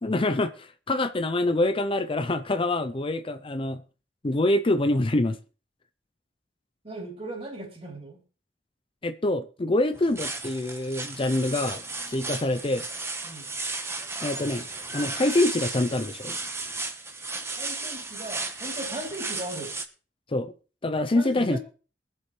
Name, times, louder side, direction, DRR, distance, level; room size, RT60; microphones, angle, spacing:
voice 1, 0.0-3.8 4.2-5.4 9.0-11.8 12.1-12.8 14.2-14.6 14.9-16.3 20.3-20.5 20.8-21.6, left 2 dB, 30° left, 0.6 m, -25 dB
voice 2, 6.8-8.2 13.2-13.5 17.6-19.7 21.1-21.6, right 1 dB, 35° right, 3.3 m, -38 dB
sound 1, 9.9-19.8, right 3 dB, 15° right, 1.2 m, -34 dB
22.5 x 7.6 x 3.2 m
head